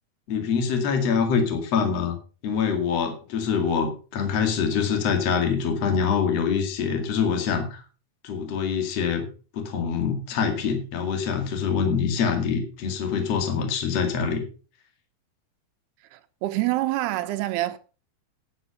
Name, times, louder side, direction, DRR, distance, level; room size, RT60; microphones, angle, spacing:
voice 1, 0.3-2.1 2.4-7.8 8.2-9.3 9.5-14.4, left 6 dB, 45° left, 2.9 m, -25 dB
voice 2, 16.1-17.8, right 16 dB, 85° right, 2.8 m, -26 dB
10.5 x 8.0 x 5.7 m
omnidirectional pair, 4.6 m